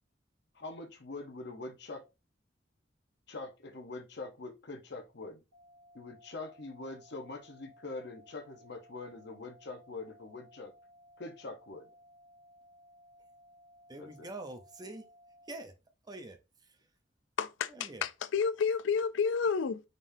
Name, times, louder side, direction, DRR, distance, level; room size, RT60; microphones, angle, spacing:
voice 1, 0.5-2.1 3.3-5.4 5.9-10.7 11.2-11.9 14.0-14.3, left 3 dB, 60° left, 0.9 m, -44 dB
sound 1, 5.5-15.5, equal, 75° right, 1.3 m, -60 dB
voice 2, 13.9-15.1 15.5-15.7 16.0-16.9 17.7-18.1, right 2 dB, 20° right, 0.6 m, -45 dB
voice 3, 17.4-19.8, left 6 dB, 80° left, 0.4 m, -30 dB
5.3 x 3.6 x 2.7 m
head